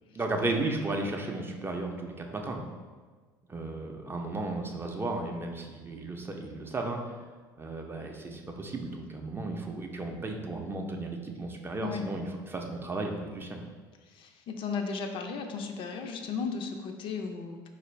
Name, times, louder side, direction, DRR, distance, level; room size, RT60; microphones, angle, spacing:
voice 1, 0.1-2.6 3.5-7.1 7.6-13.6, right 2 dB, 20° right, 2 dB, 0.5 m, -34 dB
voice 2, 14.1-17.7, left 5 dB, 50° left, 4 dB, 0.4 m, -35 dB
4.0 x 2.5 x 3.0 m, 1.4 s
hypercardioid pair, 70°, 11 cm